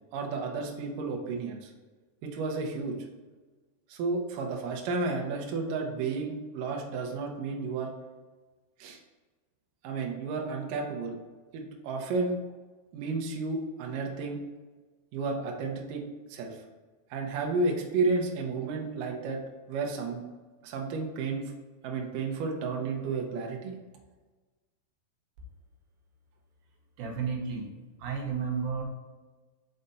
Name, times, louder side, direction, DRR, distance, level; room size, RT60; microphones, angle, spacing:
voice 1, 0.1-1.7 2.2-3.0 3.9-7.9 8.8-9.0 9.8-11.2 11.5-12.3 12.9-14.4 15.1-16.0 16.3-16.6 17.1-19.4 19.7-20.2 20.6-21.5 21.8-23.8, right 3 dB, 70° right, 1 dB, 2.2 m, -32 dB
voice 2, 27.0-27.7 28.0-28.8, right 6 dB, 90° right, 1 dB, 3.2 m, -32 dB
5.6 x 5.1 x 4.0 m, 1.3 s
omnidirectional pair, 4.8 m